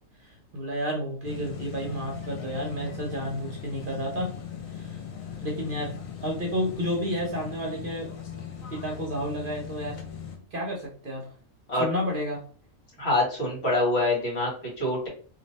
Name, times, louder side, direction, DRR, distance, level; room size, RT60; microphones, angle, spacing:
voice 1, 0.2-4.3 4.7-5.0 5.4-6.0 6.2-8.1 8.7-10.0 10.5-11.3 11.8-12.4, equal, 45° right, 0 dB, 1.0 m, -31 dB
sound 1, 1.2-10.4, left 8 dB, 80° left, 1.2 m, -39 dB
voice 2, 13.0-15.1, left 2 dB, 50° left, -3 dB, 1.9 m, -25 dB
3.1 x 2.6 x 4.1 m, 0.43 s
omnidirectional pair, 1.4 m